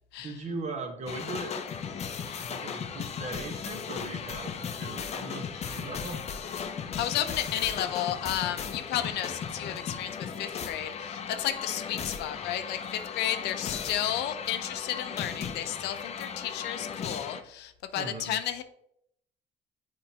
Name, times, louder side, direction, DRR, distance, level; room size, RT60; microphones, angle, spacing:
voice 1, 0.2-1.5 1.8-6.2 17.9-18.4, right 3 dB, 40° right, 5 dB, 1.0 m, -39 dB
sound 1, 1.1-17.4, left 7 dB, 40° left, 0.6 m, -36 dB
voice 2, 6.7-18.6, left 11 dB, 80° left, 10 dB, 0.6 m, -33 dB
7.5 x 4.6 x 2.8 m, 0.75 s
cardioid pair, 110°, 17 cm